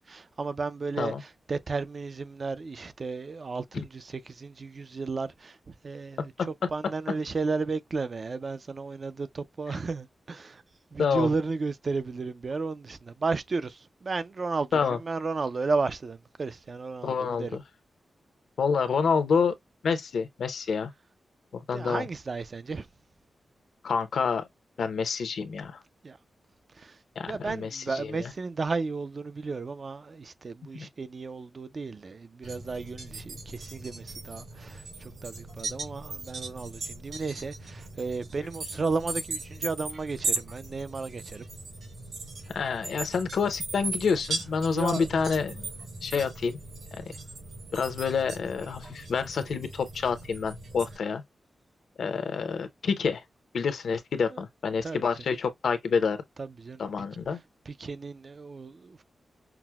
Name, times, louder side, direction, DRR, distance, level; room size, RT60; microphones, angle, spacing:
voice 1, 0.1-6.3 6.7-10.6 10.9-17.6 21.7-22.9 26.0-26.2 26.8-41.5 44.7-45.1 46.2-46.3 54.3-54.4 54.8-55.0 56.4-56.8 57.7-59.0, right 4 dB, 40° right, 0.3 m, -33 dB
voice 2, 11.0-11.3 14.7-15.0 17.0-17.6 18.6-19.5 19.8-20.9 21.5-22.0 23.8-24.5 24.8-25.8 27.2-28.3 30.7-30.9 42.5-45.7 46.0-46.6 46.9-47.0 47.7-51.2 52.0-53.2 53.5-56.2 56.8-57.4, left 5 dB, 75° left, 0.7 m, -28 dB
sound 1, 32.4-51.0, right 3 dB, 65° right, 2.8 m, -38 dB
5.8 x 2.0 x 2.2 m
wide cardioid pair, 165°, 0 cm